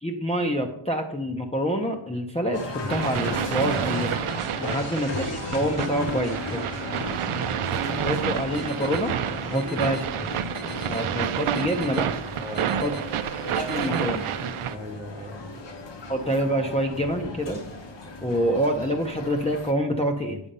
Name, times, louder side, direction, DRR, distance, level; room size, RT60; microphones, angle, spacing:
voice 1, 0.0-4.2 4.6-6.6 8.0-9.1 9.4-10.0 10.9-12.1 12.8-12.9 13.5-14.2 16.1-17.6 18.2-20.4, equal, 15° left, 0 dB, 0.7 m, -26 dB
sound 1, 2.5-19.7, left 2 dB, 60° left, 1.4 m, -35 dB
sound 2, 2.9-14.7, right 9 dB, 80° right, 0.6 m, -29 dB
sound 3, 8.5-9.0 9.5-10.0 10.5-11.0 11.5-12.0 12.5-13.0 13.5-14.0, left 4 dB, 80° left, 1.2 m, -45 dB
voice 2, 9.4-9.9 12.4-13.0 14.7-15.5, equal, 15° right, 5 dB, 0.9 m, -37 dB
8.8 x 6.3 x 5.5 m, 0.76 s
wide cardioid pair, 145°, 49 cm